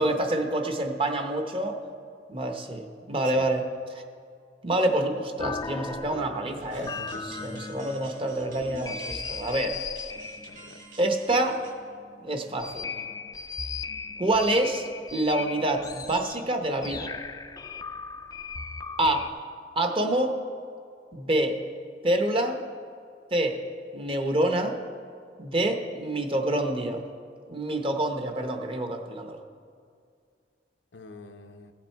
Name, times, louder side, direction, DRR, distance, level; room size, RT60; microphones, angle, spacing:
voice 1, 0.0-1.8 2.3-3.6 3.9-4.0 4.6-7.0 7.2-9.8 11.0-11.6 12.2-13.0 14.2-17.2 19.0-19.3 19.8-20.4 21.1-21.6 22.0-22.6 23.3-23.6 23.9-24.8 25.4-27.1 27.5-29.4, right 1 dB, 30° right, 5 dB, 0.8 m, -27 dB
Ringmodulated Spring Reverb, 5.4-19.3, left 5 dB, 20° left, 0.4 m, -38 dB
voice 2, 6.6-7.6 10.5-10.8 30.9-31.7, left 2 dB, 80° left, 6 dB, 0.7 m, -45 dB
sound 1, 6.6-11.7, right 3 dB, 50° right, 2.0 m, -50 dB
15.5 x 7.5 x 4.5 m, 2.3 s
head